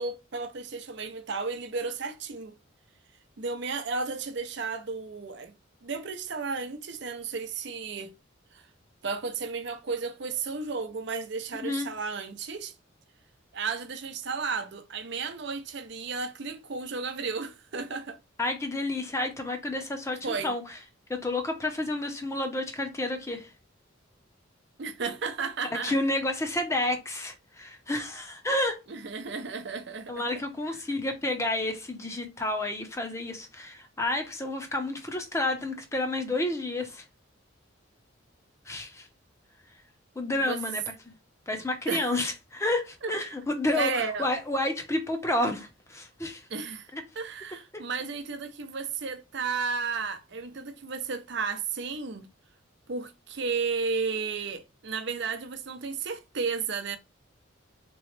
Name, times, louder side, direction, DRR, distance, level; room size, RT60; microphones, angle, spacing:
voice 1, 0.0-2.6 3.4-5.5 5.8-8.1 8.5-8.6 9.0-12.7 13.5-18.2 20.2-20.6 24.8-25.9 28.9-30.3 40.3-40.6 41.9-42.1 43.0-43.1 43.7-44.3 46.5-46.9 47.1-52.3 52.9-57.0, right 4 dB, 60° right, 0.6 m, -33 dB
voice 2, 18.4-20.6 21.1-23.5 25.8-28.8 30.1-37.0 38.7-39.1 40.2-40.8 41.5-46.4 46.9-47.0, left 1 dB, 15° left, 0.7 m, -30 dB
3.9 x 3.0 x 3.2 m
head